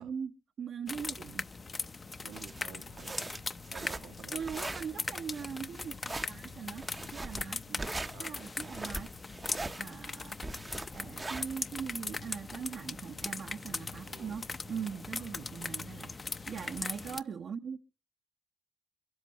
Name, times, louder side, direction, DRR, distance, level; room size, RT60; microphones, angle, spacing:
voice 1, 0.0-1.5 4.3-7.9 8.2-9.1 9.6-17.8, right 6 dB, 55° right, 0.8 m, -41 dB
sound 1, 0.9-17.2, left 4 dB, 30° left, 0.7 m, -40 dB
voice 2, 2.2-3.3 3.7-4.4 8.1-8.5 14.1-14.5 15.2-15.3, right 8 dB, 90° right, 1.5 m, -51 dB
sound 2, 2.3-11.8, right 2 dB, 20° right, 0.7 m, -41 dB
22.5 x 8.0 x 6.4 m
cardioid pair, 90°, 0 cm